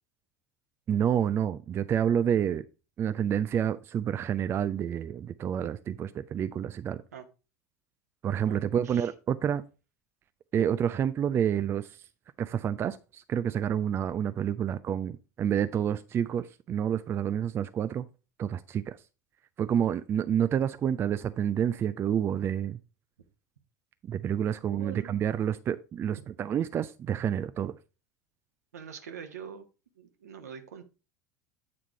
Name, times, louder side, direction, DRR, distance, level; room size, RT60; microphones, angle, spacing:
voice 1, 0.9-2.6 3.0-7.0 8.2-9.6 10.5-12.0 12.4-18.1 18.4-19.0 19.6-22.8 24.1-27.8, right 9 dB, 25° right, 0.3 m, -29 dB
voice 2, 8.5-9.1 24.6-25.1 28.7-29.7 30.0-30.8, right 7 dB, 70° right, 1.0 m, -44 dB
8.6 x 3.6 x 4.5 m
figure-of-eight pair, 75°, 9 cm